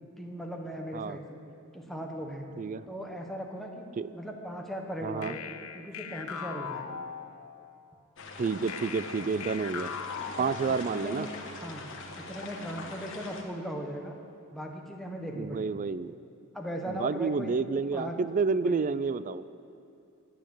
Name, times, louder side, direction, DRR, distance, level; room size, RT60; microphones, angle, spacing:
voice 1, 0.2-1.4 1.7-2.5 2.9-5.4 5.7-7.0 10.4-11.3 11.6-11.8 12.1-14.2 14.5-15.8 16.5-17.6 17.9-18.2 18.6-18.8, equal, ahead, 1 dB, 1.1 m, -38 dB
voice 2, 5.0-5.3 8.4-9.9 10.4-11.3 15.3-16.1 16.9-19.4, right 4 dB, 35° right, 15 dB, 0.3 m, -30 dB
sound 1, 5.2-7.7 8.7-11.2, left 7 dB, 85° left, 0.7 m, -40 dB
sound 2, 8.2-13.4, left 3 dB, 60° left, 1.4 m, -42 dB
10.0 x 9.2 x 8.2 m, 2.7 s
head